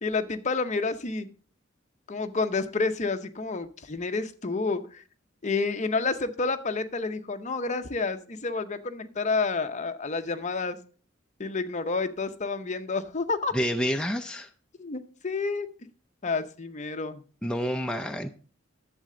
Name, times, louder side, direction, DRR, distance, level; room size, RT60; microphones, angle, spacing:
voice 1, 0.0-1.3 2.1-5.0 5.4-10.8 11.4-13.6 14.8-15.7 16.2-17.2, left 4 dB, 35° left, 9 dB, 0.7 m, -29 dB
voice 2, 13.5-14.5 17.4-18.3, equal, 5° left, 4 dB, 0.4 m, -28 dB
11.0 x 7.6 x 3.8 m, 0.39 s
head